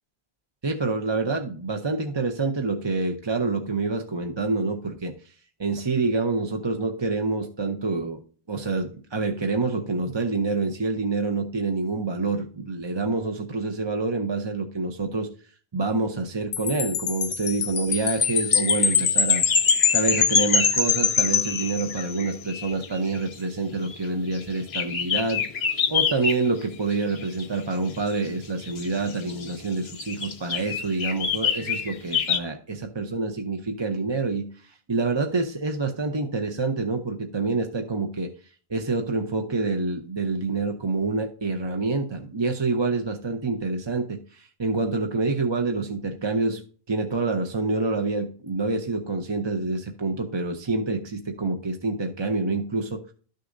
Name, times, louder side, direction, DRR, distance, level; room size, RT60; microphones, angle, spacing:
voice 1, 0.6-5.1 5.6-8.2 8.5-15.3 15.7-19.4 19.9-25.4 25.9-38.3 38.7-46.6 46.9-53.0, right 3 dB, 30° right, 4 dB, 0.7 m, -27 dB
Wind chime, 16.5-22.2, left 6 dB, 55° left, 0.8 m, -23 dB
sound 1, 18.0-32.4, left 6 dB, 85° left, 1.1 m, -30 dB
12.5 x 6.6 x 2.6 m, 0.41 s
omnidirectional pair, 1.0 m